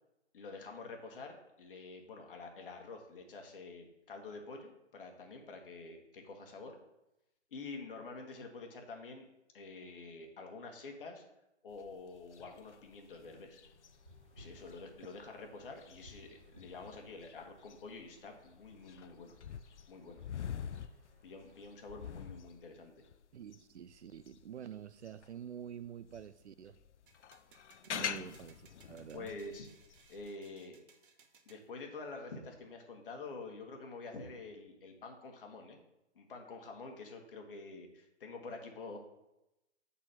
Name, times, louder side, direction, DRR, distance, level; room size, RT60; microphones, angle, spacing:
voice 1, 0.3-6.7 7.5-9.3 9.5-11.2 11.6-13.6 14.4-19.3 19.9-20.2 21.2-22.9 27.9-28.1 29.1-29.7 30.1-30.8 31.4-35.8 36.1-39.0, left 3 dB, 50° left, 1.6 m, -48 dB
sound 1, 11.7-25.4 25.8-30.3, left 8 dB, 80° left, 0.5 m, -46 dB
sound 2, 13.6-22.4, left 1 dB, 10° right, 0.3 m, -62 dB
voice 2, 23.3-26.8 27.8-29.3, right 9 dB, 75° right, 0.5 m, -48 dB
sound 3, 27.1-31.7, right 6 dB, 50° right, 1.0 m, -65 dB
7.5 x 4.2 x 5.9 m
figure-of-eight pair, 135°, 35 cm